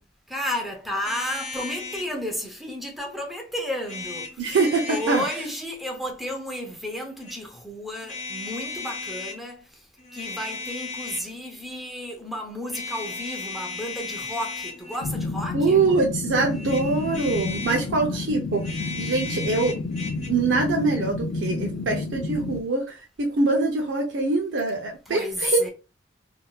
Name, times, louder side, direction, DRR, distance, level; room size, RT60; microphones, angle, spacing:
voice 1, 0.3-4.6 4.9-15.9 17.8-18.2 25.1-25.7, equal, ahead, 0.7 m, -32 dB
sound 1, 1.0-2.1 3.8-5.4 7.0-7.4 8.0-9.4 10.0-11.4 12.7-15.1 16.5-17.9 18.5-20.3, left 3 dB, 40° left, 0.9 m, -35 dB
voice 2, 4.4-5.2 15.5-19.7 20.3-25.7, right 3 dB, 85° right, 0.6 m, -24 dB
sound 2, 15.0-22.6, left 3 dB, 70° left, 0.4 m, -30 dB
3.5 x 2.6 x 2.3 m
head